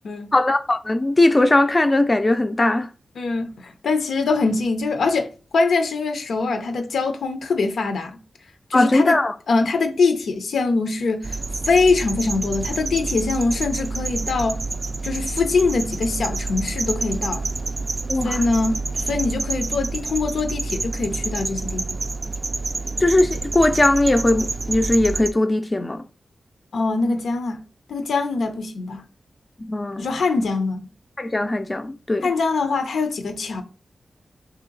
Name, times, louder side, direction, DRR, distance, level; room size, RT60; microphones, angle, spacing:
voice 1, 0.3-2.9 8.7-9.3 18.1-18.4 23.0-26.1 29.7-30.1 31.2-32.3, left 2 dB, 30° left, 0.4 m, -19 dB
voice 2, 3.2-8.2 8.7-9.2 9.5-11.4 11.6-14.6 15.0-17.4 18.2-22.0 26.7-27.6 27.9-29.0 30.0-30.8 32.2-33.6, left 3 dB, 90° left, 0.7 m, -23 dB
sound 1, 11.2-25.3, right 3 dB, 40° right, 0.3 m, -28 dB
3.2 x 2.8 x 3.8 m
wide cardioid pair, 75°, 0 cm